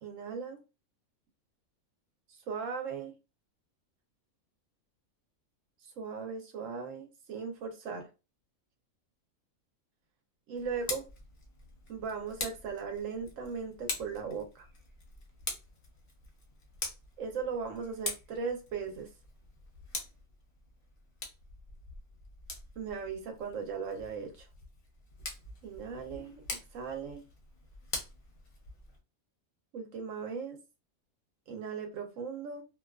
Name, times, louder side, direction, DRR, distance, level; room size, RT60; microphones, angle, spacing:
voice 1, 0.0-0.6 2.5-3.1 6.0-8.1 10.5-11.0 11.9-14.7 17.2-19.1 22.8-24.5 25.6-26.4 26.7-27.2 29.7-30.6 31.5-32.6, right 5 dB, 70° right, 1.0 m, -38 dB
Tick, 10.5-29.0, left 3 dB, 45° left, 0.7 m, -44 dB
2.6 x 2.3 x 2.3 m
omnidirectional pair, 1.5 m